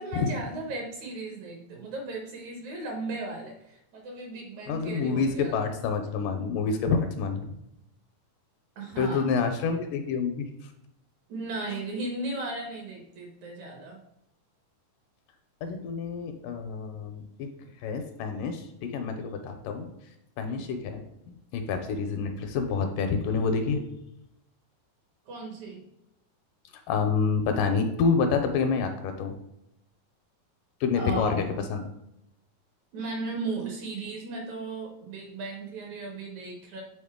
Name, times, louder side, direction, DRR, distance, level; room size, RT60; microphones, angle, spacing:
voice 1, 0.0-5.6 8.8-9.3 11.3-14.0 20.4-20.6 25.3-25.8 31.0-31.4 32.9-36.8, right 2 dB, 65° right, 1 dB, 2.2 m, -36 dB
voice 2, 4.7-7.5 9.0-10.5 15.6-17.5 17.8-19.9 20.4-23.8 26.9-29.3 30.8-31.4 31.7-31.8, left 5 dB, 80° left, 6 dB, 2.1 m, -28 dB
7.8 x 4.1 x 3.6 m, 0.82 s
omnidirectional pair, 4.0 m